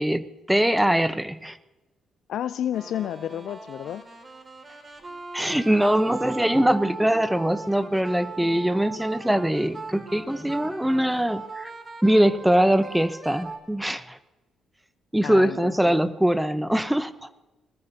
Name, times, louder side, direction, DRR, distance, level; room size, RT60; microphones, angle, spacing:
voice 1, 0.0-1.6 5.3-11.7 12.0-14.2 15.1-17.3, right 1 dB, 5° right, 13 dB, 0.9 m, -22 dB
voice 2, 2.3-4.0 15.2-16.1, left 10 dB, 70° left, 14 dB, 0.4 m, -31 dB
sound 1, 2.7-13.7, right 4 dB, 30° right, 2.8 m, -39 dB
20.5 x 20.0 x 2.8 m, 1.1 s
hypercardioid pair, 50°, 0 cm